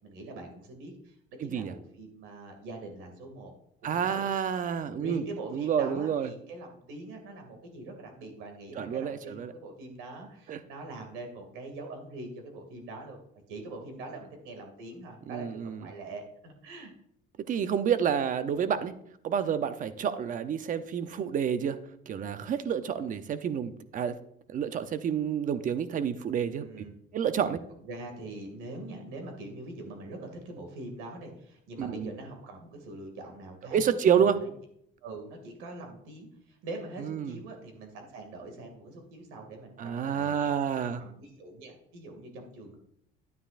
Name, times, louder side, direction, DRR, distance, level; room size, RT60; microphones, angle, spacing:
voice 1, 0.0-3.5 3.8-4.2 5.0-13.2 13.5-16.9 26.6-26.9 27.8-34.2 35.0-42.8, right 2 dB, 85° right, 3 dB, 2.4 m, -43 dB
voice 2, 1.4-1.7 3.8-5.2 5.5-6.3 8.8-9.5 10.5-10.6 15.3-15.8 17.5-18.9 19.2-21.8 22.1-24.1 24.5-26.8 27.1-27.6 31.8-32.1 33.7-34.4 37.0-37.4 39.8-41.0, right 8 dB, 40° right, 12 dB, 0.7 m, -29 dB
11.5 x 9.5 x 2.5 m, 0.72 s
cardioid pair, 130°, 20 cm